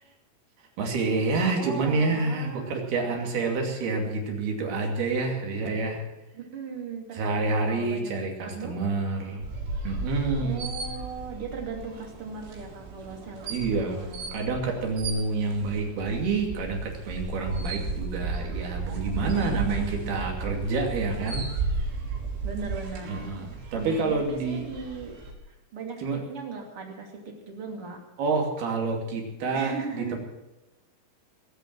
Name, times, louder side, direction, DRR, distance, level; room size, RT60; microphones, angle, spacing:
voice 1, 0.8-6.0 7.1-9.5 9.8-10.7 13.5-14.1 14.3-21.5 23.1-24.7 26.0-26.2 28.2-30.2, right 3 dB, 55° right, 2 dB, 4.1 m, -28 dB
voice 2, 1.5-2.7 6.3-8.1 8.4-8.8 10.4-14.3 15.4-15.6 19.3-20.3 22.4-23.2 23.7-25.2 25.5-28.0 29.5-30.2, right 5 dB, 35° right, 1 dB, 2.7 m, -38 dB
sound 1, 9.4-25.3, right 3 dB, 80° right, 6.1 m, -34 dB
20.0 x 8.3 x 7.5 m, 1.0 s
omnidirectional pair, 5.9 m